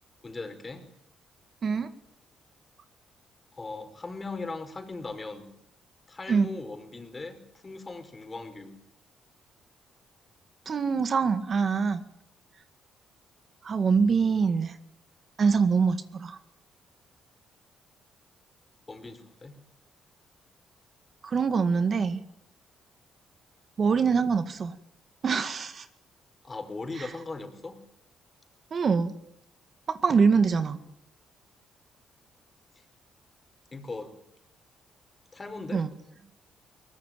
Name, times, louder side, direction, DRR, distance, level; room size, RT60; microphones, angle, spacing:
voice 1, 0.2-0.8 3.5-5.5 6.1-8.7 18.9-19.5 26.4-27.8 33.7-34.2 35.3-35.8, left 3 dB, 25° left, 7 dB, 4.9 m, -39 dB
voice 2, 10.7-12.0 13.6-14.8 15.4-16.4 21.2-22.2 23.8-24.8 25.2-25.9 27.0-27.1 28.7-29.1 29.9-30.8 35.7-35.9, right 5 dB, 45° right, 10 dB, 1.9 m, -24 dB
22.0 x 19.5 x 9.3 m, 0.77 s
cardioid pair, 90°, 0 cm